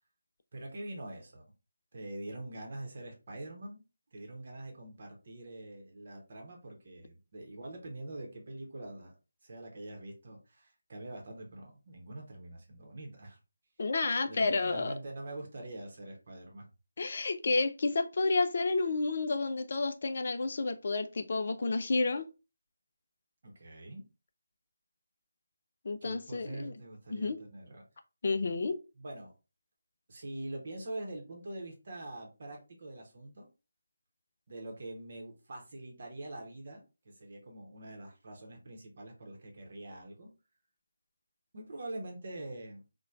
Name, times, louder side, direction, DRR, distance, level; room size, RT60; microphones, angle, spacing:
voice 1, 0.5-1.4 1.9-3.8 4.1-9.1 9.4-13.4 14.3-16.7 23.4-24.0 26.0-27.8 29.0-29.3 30.1-33.5 34.5-40.3 41.5-42.8, right 1 dB, 45° right, 0.8 m, -44 dB
voice 2, 13.8-14.9 17.0-22.3 25.8-26.7 27.1-27.4 28.2-28.8, left 3 dB, 45° left, 0.3 m, -30 dB
3.0 x 2.1 x 2.4 m
figure-of-eight pair, 155°, 0 cm